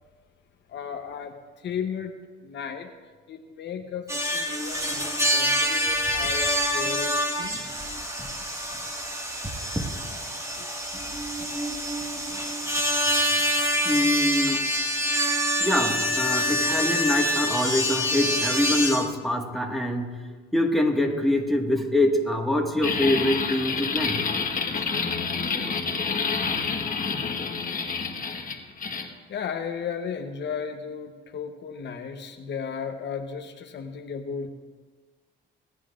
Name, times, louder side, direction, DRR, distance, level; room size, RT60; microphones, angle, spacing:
voice 1, 0.7-1.3 1.6-2.1 2.4-2.9 3.3-7.6 9.6-9.7 10.6-10.7 29.3-34.5, left 6 dB, 65° left, 5 dB, 0.9 m, -35 dB
sound 1, 4.1-19.0, equal, 15° right, 1.8 m, -26 dB
voice 2, 13.8-14.6 15.6-20.1 20.5-24.2, left 1 dB, ahead, 0 dB, 1.7 m, -24 dB
sound 2, 22.8-29.1, left 5 dB, 45° left, 1.3 m, -28 dB
25.5 x 9.7 x 2.5 m, 1.4 s
cardioid pair, 90°, 20 cm